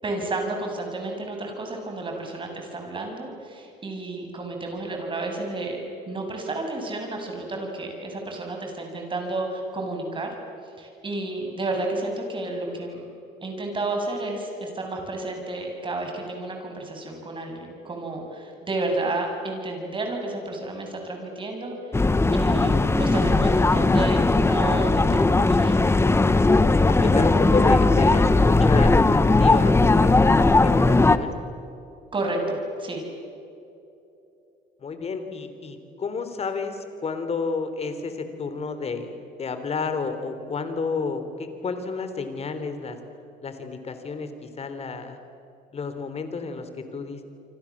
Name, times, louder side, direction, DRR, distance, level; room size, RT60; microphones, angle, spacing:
voice 1, 0.0-5.8 6.1-10.3 10.8-13.0 13.4-21.9 22.3-25.8 32.1-33.0, right 2 dB, 30° right, 2 dB, 7.5 m, -31 dB
sound 1, 21.9-31.2, left 3 dB, 15° left, 1.2 m, -18 dB
voice 2, 26.9-31.3 34.8-43.0 43.4-45.2 45.7-47.2, left 4 dB, 40° left, 8 dB, 3.6 m, -30 dB
29.0 x 25.5 x 7.5 m, 2.7 s
cardioid pair, 110°, 17 cm